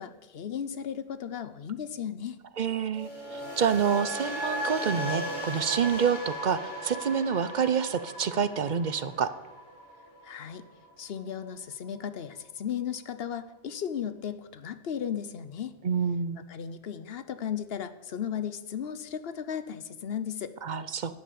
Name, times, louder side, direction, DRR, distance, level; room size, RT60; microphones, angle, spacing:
voice 1, 0.0-2.4 10.2-10.6 11.0-15.8 16.5-20.5, left 8 dB, 70° left, 12 dB, 1.1 m, -35 dB
voice 2, 2.6-9.3 15.8-16.4 20.6-21.2, right 7 dB, 50° right, 13 dB, 0.8 m, -28 dB
sound 1, 2.9-11.1 11.3-11.7, equal, 45° left, 2.7 m, -37 dB
11.5 x 9.4 x 8.5 m, 1.1 s
omnidirectional pair, 1.1 m